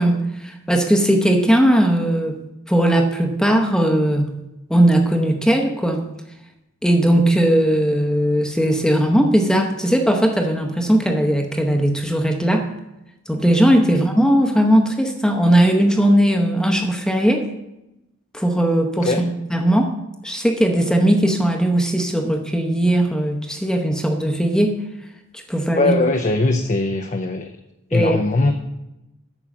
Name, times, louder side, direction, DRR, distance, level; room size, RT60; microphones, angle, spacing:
voice 1, 0.0-2.4 2.7-4.4 4.7-6.0 6.8-12.7 13.3-17.5 18.3-19.9 20.2-24.8 25.3-25.9 27.9-28.2, right 1 dB, 5° left, 3 dB, 0.8 m, -18 dB
voice 2, 25.8-27.6 27.9-28.5, left 2 dB, 35° left, 5 dB, 0.6 m, -20 dB
8.9 x 6.1 x 7.1 m, 0.92 s
head